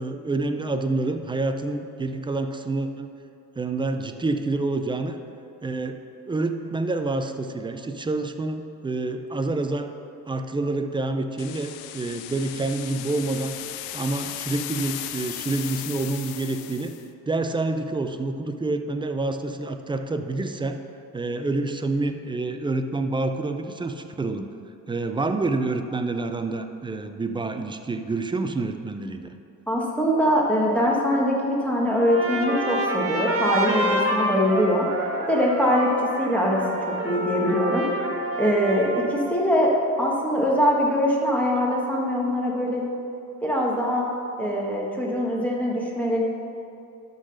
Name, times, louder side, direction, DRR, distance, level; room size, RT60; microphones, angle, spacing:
voice 1, 0.0-3.1 3.6-5.2 5.6-9.9 10.3-13.6 13.9-17.0 17.3-20.8 21.1-24.5 24.9-29.3, right 2 dB, 15° right, 7 dB, 0.5 m, -28 dB
sound 1, 11.4-17.0, left 12 dB, 90° left, 0.6 m, -36 dB
voice 2, 29.7-34.9 35.3-36.6 37.0-38.1 38.4-42.8 43.4-44.1 44.4-46.2, equal, 5° left, -4 dB, 1.4 m, -22 dB
Trumpet, 31.9-39.2, right 1 dB, 40° right, 1.4 m, -28 dB
11.5 x 4.0 x 6.4 m, 2.6 s
cardioid pair, 105°, 35 cm